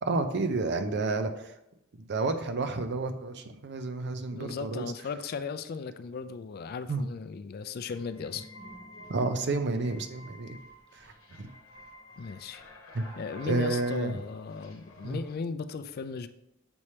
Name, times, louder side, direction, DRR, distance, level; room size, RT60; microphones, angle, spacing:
voice 1, 0.0-1.5 2.1-4.9 6.9-7.0 9.1-10.6 11.0-11.5 12.9-13.1 13.4-14.2 15.0-15.2, right 3 dB, 55° right, 8 dB, 0.5 m, -30 dB
voice 2, 4.3-8.5 12.2-12.6 13.2-16.3, left 5 dB, 50° left, 11 dB, 0.3 m, -37 dB
sound 1, 7.9-15.4, left 1 dB, 85° left, 1.0 m, -50 dB
7.0 x 3.3 x 4.2 m, 0.84 s
head